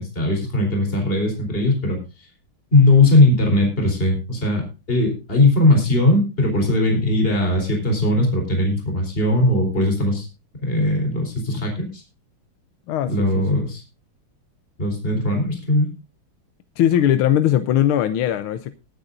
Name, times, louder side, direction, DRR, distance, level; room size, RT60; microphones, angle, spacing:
voice 1, 0.0-2.0 2.7-10.3 10.6-12.0 13.1-13.8 14.8-15.9, left 2 dB, 25° left, 2 dB, 4.3 m, -19 dB
voice 2, 12.9-13.6 16.8-18.7, left 11 dB, 85° left, 11 dB, 1.6 m, -20 dB
21.5 x 9.8 x 2.6 m, 0.29 s
omnidirectional pair, 2.3 m